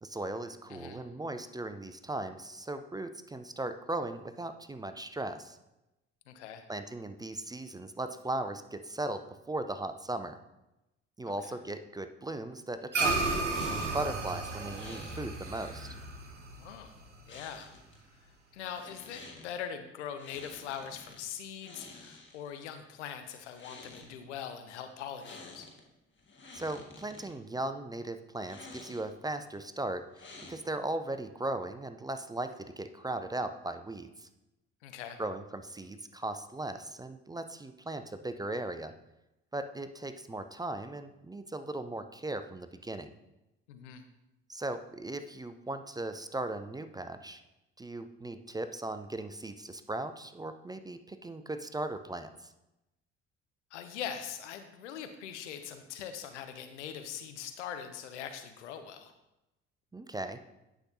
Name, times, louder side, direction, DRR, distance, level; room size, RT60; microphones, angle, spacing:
voice 1, 0.0-5.6 6.7-10.4 11.2-15.9 26.5-34.3 35.2-38.9 39.5-43.1 44.5-47.4 47.8-52.5 59.9-60.4, right 2 dB, 10° right, 9 dB, 0.5 m, -38 dB
voice 2, 0.7-1.0 6.3-6.6 11.4-11.6 16.6-16.9 17.3-17.7 18.5-25.7 34.8-35.2 43.7-44.0 53.7-59.1, left 8 dB, 75° left, 8 dB, 0.7 m, -42 dB
sound 1, 12.9-17.6, right 3 dB, 90° right, 0.7 m, -33 dB
sound 2, 13.5-14.0 14.7-15.2 17.3-18.0 18.6-19.5 20.2-21.2 21.6-22.6 23.4-24.1 25.2-25.8 26.2-27.3 28.4-29.2 30.1-30.9, left 3 dB, 30° left, 1.7 m, -50 dB
9.8 x 6.1 x 2.7 m, 0.93 s
figure-of-eight pair, 50°, 36 cm